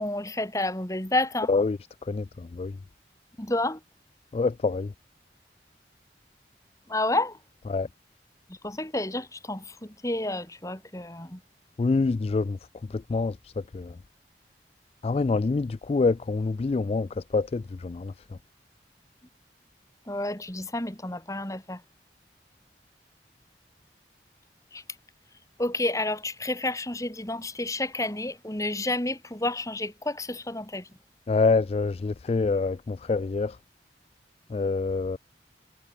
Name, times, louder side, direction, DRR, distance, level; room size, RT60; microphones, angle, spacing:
voice 1, 0.0-1.5 3.4-3.8 6.9-7.4 8.5-11.4 20.1-21.8 24.7-24.8 25.6-30.9, left 2 dB, 20° left, 3.0 m, -30 dB
voice 2, 1.5-2.3 2.5-2.7 4.3-4.9 7.6-7.9 11.8-12.6 12.9-14.0 15.0-18.1 31.3-33.6 34.5-35.2, left 4 dB, 35° left, 0.3 m, -26 dB
head